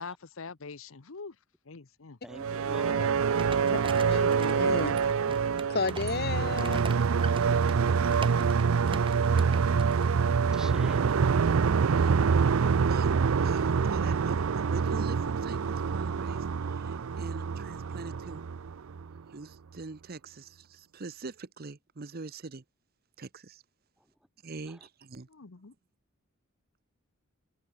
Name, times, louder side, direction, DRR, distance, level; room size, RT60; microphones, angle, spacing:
voice 1, 0.0-1.4 1.6-2.2 25.3-25.7, left 4 dB, 75° left, 1.0 m, -43 dB
voice 2, 2.2-3.2 10.5-11.2 24.0-24.1 24.6-24.9, equal, 5° right, 1.5 m, -46 dB
sound 1, 2.3-19.2, right 6 dB, 85° right, 0.5 m, -26 dB
sound 2, 3.3-10.1, right 3 dB, 25° right, 2.3 m, -43 dB
voice 3, 4.1-5.0 5.7-6.8, left 3 dB, 50° left, 1.3 m, -32 dB
voice 4, 11.7-18.4 19.3-22.6 23.2-23.6 24.4-25.3, right 3 dB, 45° right, 0.8 m, -43 dB
head